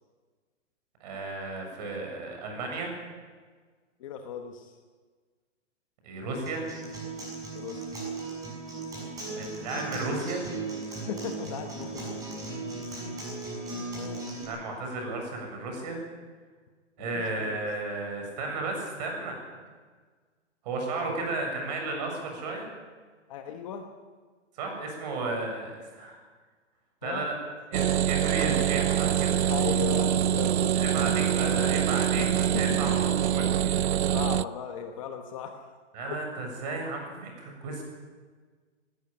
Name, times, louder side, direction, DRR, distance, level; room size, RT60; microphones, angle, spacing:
voice 1, 1.0-2.9 6.0-6.6 9.3-10.4 14.5-16.0 17.0-19.4 20.6-22.7 24.6-26.2 27.0-27.3 27.7-29.4 30.5-32.3 32.6-34.2 35.9-37.8, right 3 dB, 35° right, 2 dB, 7.3 m, -34 dB
voice 2, 4.0-4.8 7.5-7.9 9.9-10.0 11.1-12.2 13.9-14.2 17.0-17.7 21.1-21.3 23.3-23.9 27.0-27.3 29.4-31.9 32.5-33.0 33.5-35.7, left 7 dB, 25° left, 5 dB, 1.2 m, -38 dB
Acoustic guitar, 6.5-14.4, right 3 dB, 10° right, 6.9 m, -37 dB
sound 1, 27.7-34.4, right 10 dB, 60° right, 0.6 m, -25 dB
19.0 x 18.5 x 8.9 m, 1.5 s
hypercardioid pair, 165°, 37 cm